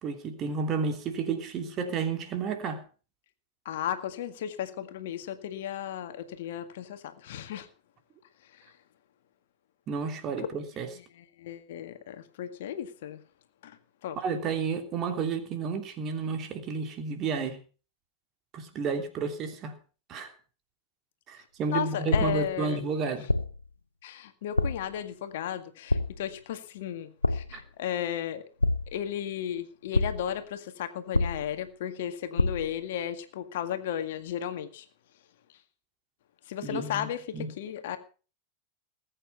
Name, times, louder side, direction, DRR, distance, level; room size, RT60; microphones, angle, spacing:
voice 1, 0.0-2.8 9.9-10.9 14.2-17.6 18.5-19.7 20.1-20.3 21.3-23.3 27.5-27.6 36.6-37.1 37.3-37.5, right 5 dB, 30° right, 6 dB, 3.0 m, -31 dB
voice 2, 3.7-7.7 8.5-8.7 10.4-10.5 11.4-13.2 13.6-13.8 14.0-14.2 21.7-22.8 24.0-28.4 28.9-34.9 36.5-38.0, left 10 dB, 55° left, 8 dB, 1.9 m, -34 dB
sound 1, 22.1-22.6 23.3-23.7 24.6-25.0 25.9-26.3 27.2-27.7 28.6-29.2 29.9-30.4 31.1-31.7 32.4-32.8, left 2 dB, 85° left, 0.6 m, -27 dB
20.0 x 9.1 x 5.7 m, 0.37 s
figure-of-eight pair, 90°, 0 cm